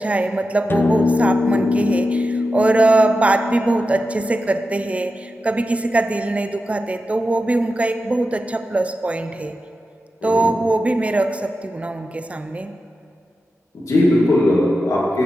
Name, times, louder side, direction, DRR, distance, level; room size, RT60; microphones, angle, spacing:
voice 1, 0.0-9.6 10.2-12.7, right 2 dB, 25° right, 8 dB, 0.5 m, -21 dB
sound 1, 0.7-5.2, left 3 dB, 45° left, 0.6 m, -22 dB
voice 2, 13.7-15.2, left 1 dB, 85° left, -5 dB, 2.0 m, -18 dB
15.5 x 6.9 x 3.0 m, 2.5 s
cardioid pair, 60°, 5 cm